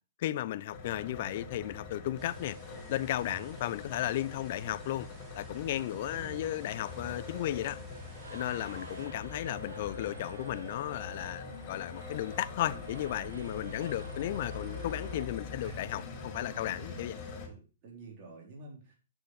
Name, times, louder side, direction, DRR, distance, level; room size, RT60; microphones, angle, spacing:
voice 1, 0.2-2.6 2.9-5.1 5.3-7.8 8.3-17.2, left 13 dB, 55° left, 0.7 m, -34 dB
sound 1, 0.7-17.5, left 4 dB, 30° left, 5.4 m, -43 dB
sound 2, 2.2-9.1, right 2 dB, 20° right, 3.8 m, -57 dB
voice 2, 5.9-6.6 13.2-13.3 14.2-14.3 15.6-15.8 16.8-17.0 17.5-19.0, right 3 dB, 40° right, 4.4 m, -50 dB
sound 3, 6.6-15.2, right 3 dB, 75° right, 4.2 m, -51 dB
9.3 x 7.9 x 4.9 m
hypercardioid pair, 120°, 0 cm